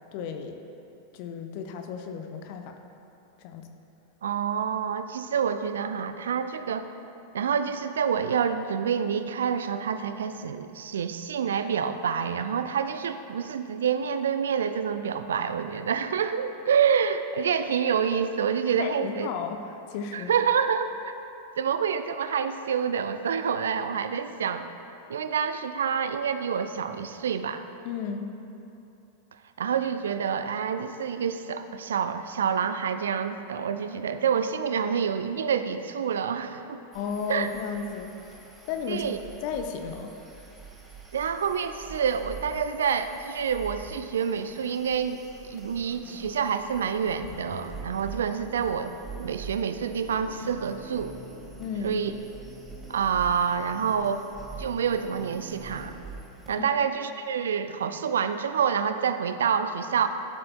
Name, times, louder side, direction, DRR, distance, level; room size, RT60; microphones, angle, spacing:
voice 1, 0.1-0.6 1.1-2.8 3.4-3.7 18.8-20.3 27.8-28.3 36.9-38.4 38.7-39.1 39.4-40.1 51.6-52.0 56.6-56.7, left 6 dB, 45° left, 5 dB, 0.6 m, -34 dB
voice 2, 4.2-6.9 7.3-19.3 20.1-21.1 21.6-24.7 25.1-27.6 29.6-36.8 37.3-37.5 38.9-39.2 41.1-48.9 49.2-51.2 51.8-52.1 52.9-54.3 54.6-56.0 56.5-60.1, right 7 dB, 65° right, 10 dB, 0.3 m, -27 dB
sound 1, 36.9-56.6, right 4 dB, 10° right, 1.2 m, -46 dB
sound 2, 47.1-56.0, equal, 80° left, 1.6 m, -48 dB
13.0 x 7.6 x 2.2 m, 2.8 s
figure-of-eight pair, 90°, 0 cm